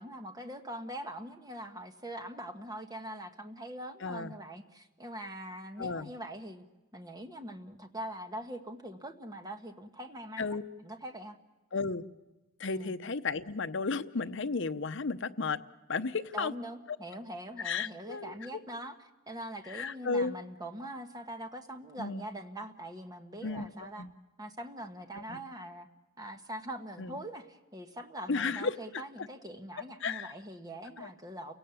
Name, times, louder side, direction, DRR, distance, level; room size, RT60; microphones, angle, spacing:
voice 1, 0.0-6.6 6.9-10.5 10.8-11.4 12.7-12.9 16.3-19.0 19.3-24.0 24.4-25.9 26.2-31.6, right 1 dB, 20° right, 6 dB, 1.3 m, -43 dB
voice 2, 4.0-4.3 5.8-6.1 10.4-10.6 11.7-12.0 12.6-15.6 15.9-16.5 17.6-18.6 19.7-20.3 22.0-22.2 23.4-23.7 24.0-24.1 25.1-25.4 27.0-27.2 28.3-29.3 30.0-30.3 31.0-31.1, left 4 dB, 60° left, 10 dB, 0.8 m, -34 dB
29.5 x 17.5 x 7.1 m, 1.2 s
head